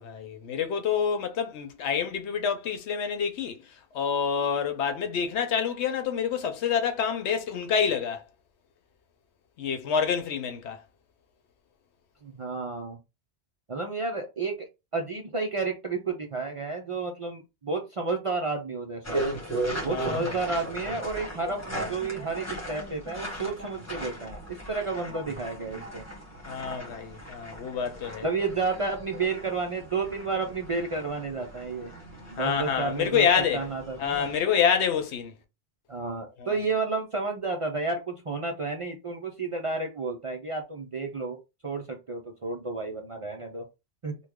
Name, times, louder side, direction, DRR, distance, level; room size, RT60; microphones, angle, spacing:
voice 1, 0.0-3.6 3.9-8.2 9.6-10.8 19.8-20.4 26.5-28.2 32.4-33.6 34.0-35.3 36.4-36.5, left 7 dB, 80° left, 0.9 m, -27 dB
voice 2, 12.2-13.0 13.7-14.7 14.9-19.2 19.8-26.0 28.2-31.9 32.3-34.3 35.9-43.6 44.0-44.2, right 4 dB, 45° right, 0.4 m, -31 dB
sound 1, 19.0-34.4, right 1 dB, 15° left, 1.2 m, -37 dB
3.0 x 2.2 x 3.5 m
omnidirectional pair, 1.1 m